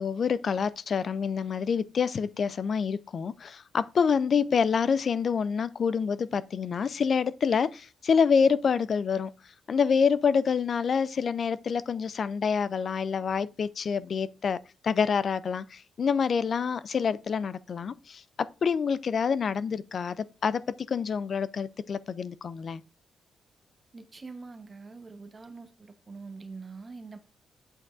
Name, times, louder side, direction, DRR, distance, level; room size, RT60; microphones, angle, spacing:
voice 1, 0.0-9.3 9.7-14.6 14.8-20.6 20.9-22.8, left 6 dB, 50° left, 0.3 m, -27 dB
voice 2, 23.9-27.2, right 4 dB, 30° right, 0.9 m, -44 dB
8.3 x 5.3 x 2.5 m
cardioid pair, 100°, 0 cm